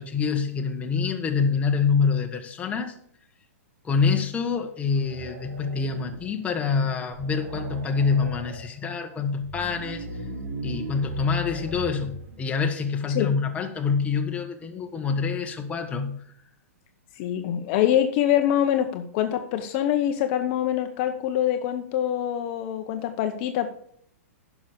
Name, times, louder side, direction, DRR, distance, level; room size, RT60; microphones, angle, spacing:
voice 1, 0.0-2.9 3.8-10.1 10.6-16.2, left 5 dB, 15° left, 4 dB, 1.4 m, -26 dB
sound 1, 4.9-6.4 6.8-6.9 7.1-8.7 9.3-12.4, right 2 dB, 60° right, 2.6 m, -37 dB
voice 2, 17.2-23.7, left 11 dB, 45° left, 7 dB, 0.9 m, -24 dB
10.5 x 6.1 x 6.7 m, 0.65 s
hypercardioid pair, 130°, 8 cm